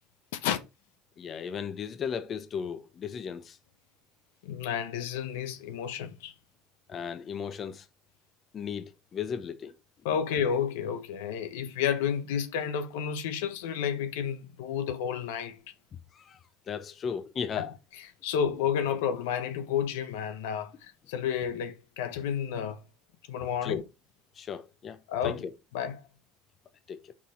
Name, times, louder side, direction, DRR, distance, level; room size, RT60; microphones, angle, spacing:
voice 1, 1.2-3.6 6.9-7.8 8.5-9.7 16.1-16.4 16.7-17.7 23.6-23.8 24.4-25.0 25.2-25.5 26.9-27.1, left 7 dB, 40° left, 0.9 m, -35 dB
voice 2, 4.4-6.3 10.0-15.6 17.5-22.8 23.3-23.8 25.1-25.4 25.7-26.0, left 8 dB, 75° left, 0.9 m, -31 dB
6.0 x 4.2 x 4.4 m
hypercardioid pair, 75°, 0 cm